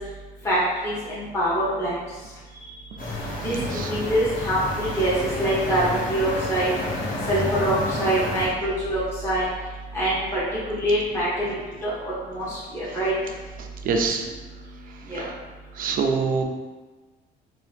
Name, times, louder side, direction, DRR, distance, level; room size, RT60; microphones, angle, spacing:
voice 1, 1.3-1.9 3.4-3.5 3.9-5.1 5.4-5.8 6.1-6.7 7.3-7.7 8.0-9.4 9.9-10.4 10.7-11.3 11.8-12.4 12.7-13.1 15.1-15.2, right 1 dB, 15° left, -10 dB, 1.0 m, -24 dB
sound 1, 3.0-8.5, left 1 dB, 55° left, 1.0 m, -30 dB
voice 2, 3.3-3.9 11.4-11.5 13.6-14.2 15.1-15.3 15.7-16.4, right 5 dB, 55° right, 3 dB, 0.4 m, -26 dB
2.8 x 2.3 x 3.3 m, 1.3 s
cardioid pair, 110°, 17 cm